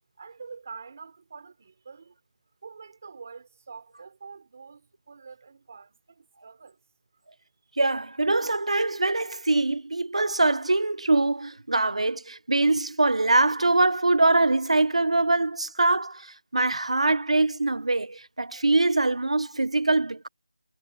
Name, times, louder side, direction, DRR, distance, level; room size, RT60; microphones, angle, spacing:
voice 1, 0.2-2.2 2.6-6.8, right 5 dB, 25° right, 3.9 m, -46 dB
voice 2, 7.8-20.3, right 2 dB, 80° right, 0.8 m, -23 dB
figure-of-eight pair, 180°, 3 cm